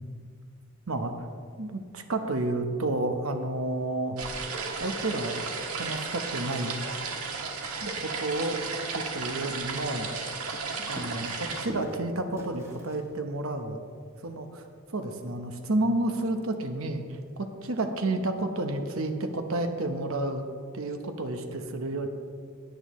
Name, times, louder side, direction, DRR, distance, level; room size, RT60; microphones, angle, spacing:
voice 1, 1.6-4.2 4.8-5.4 5.7-6.8 7.8-8.6 8.9-10.1 10.8-13.8 14.2-20.4 20.7-22.1, right 2 dB, 70° right, 6 dB, 1.0 m, -31 dB
sound 1, 4.2-11.7, right 4 dB, 85° right, 1.5 m, -34 dB
sound 2, 7.8-13.2, equal, 10° right, 1.4 m, -47 dB
17.0 x 9.1 x 3.2 m, 2.1 s
head